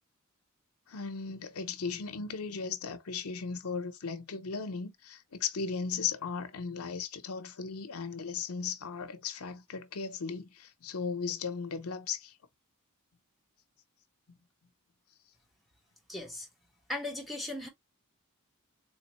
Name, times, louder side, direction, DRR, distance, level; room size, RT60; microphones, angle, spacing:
voice 1, 0.9-12.3, left 5 dB, 75° left, 0.7 m, -36 dB
voice 2, 16.1-16.5 16.9-17.7, left 2 dB, ahead, 1.2 m, -37 dB
3.9 x 2.9 x 3.0 m
head